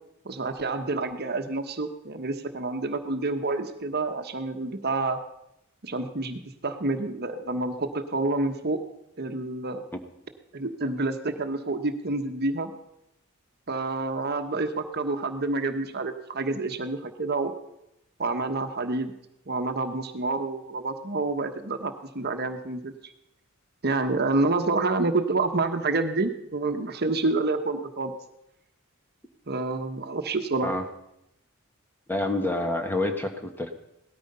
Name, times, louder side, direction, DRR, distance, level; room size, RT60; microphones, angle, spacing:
voice 1, 0.2-5.2 5.8-8.8 9.2-9.8 10.5-12.7 13.7-17.5 18.2-19.1 19.5-22.9 23.8-28.1 29.5-30.7, right 3 dB, 50° right, 7 dB, 1.2 m, -28 dB
voice 2, 32.1-33.7, left 2 dB, 10° left, 5 dB, 1.5 m, -27 dB
18.0 x 13.0 x 5.5 m, 0.85 s
head